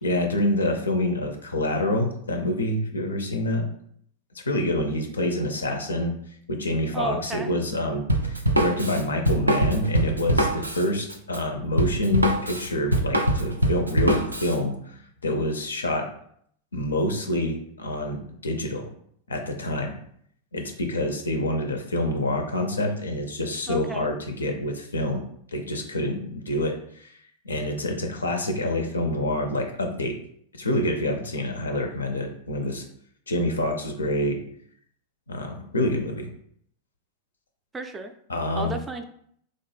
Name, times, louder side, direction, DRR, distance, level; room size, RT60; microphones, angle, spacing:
voice 1, 0.0-3.6 4.4-6.1 6.5-14.7 15.2-16.1 16.7-18.9 19.3-19.9 20.5-25.2 25.5-26.7 27.0-27.1 27.4-30.2 30.6-32.8 33.3-34.4 35.3-36.3 38.3-38.7, left 1 dB, 80° left, 4 dB, 0.4 m, -27 dB
voice 2, 6.9-7.5 23.7-24.1 37.7-38.1 38.5-39.0, right 2 dB, 15° right, 7 dB, 0.3 m, -32 dB
Drum kit, 8.1-14.6, right 1 dB, 90° right, 0.4 m, -23 dB
2.9 x 2.1 x 3.2 m, 0.66 s
figure-of-eight pair, 95°, 0 cm